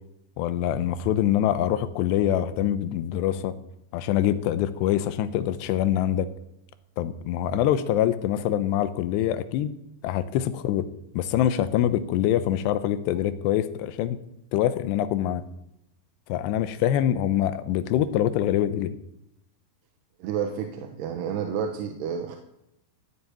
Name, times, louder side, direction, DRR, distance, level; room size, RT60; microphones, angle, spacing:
voice 1, 0.4-3.5 3.9-6.3 7.0-9.8 10.0-10.9 11.1-14.2 14.5-15.4 16.3-19.0, left 11 dB, 85° left, 13 dB, 3.0 m, -24 dB
voice 2, 20.2-22.4, right 7 dB, 80° right, 4 dB, 3.1 m, -30 dB
16.0 x 7.1 x 9.0 m, 0.83 s
omnidirectional pair, 4.8 m